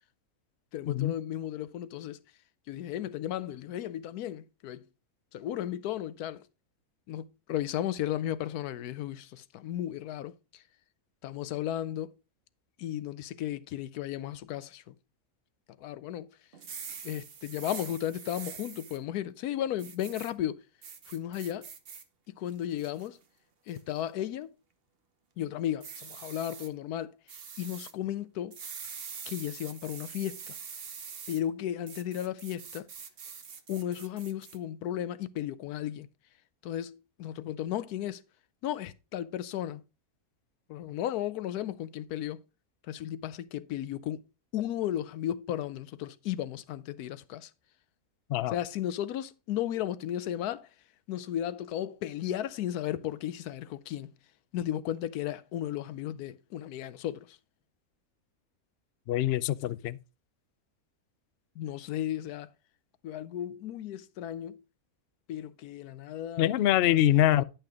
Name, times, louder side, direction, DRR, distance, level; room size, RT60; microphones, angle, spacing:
voice 1, 0.7-2.2 2.7-4.9 5.3-6.4 7.1-10.6 11.2-12.1 12.8-14.9 15.8-16.3 17.0-20.6 21.1-21.7 22.3-23.2 23.7-24.5 25.4-27.1 27.6-28.6 29.3-30.6 31.3-32.9 33.7-36.1 36.6-38.2 38.6-39.8 40.7-42.4 42.9-44.2 44.5-47.5 48.5-50.7 51.1-54.1 54.5-57.4 61.6-62.5 63.0-64.6 65.3-66.5 66.9-67.4, left 11 dB, 90° left, 1.2 m, -35 dB
sound 1, 16.5-19.0 19.8-20.3 20.8-22.0 22.5-23.1 23.7-24.0 25.8-26.7 27.3-27.9 28.5-31.4 31.9-34.6, right 6 dB, 45° right, 0.9 m, -44 dB
voice 2, 59.1-60.0 66.4-67.4, left 13 dB, 75° left, 0.5 m, -24 dB
10.5 x 5.8 x 3.5 m
omnidirectional pair, 1.6 m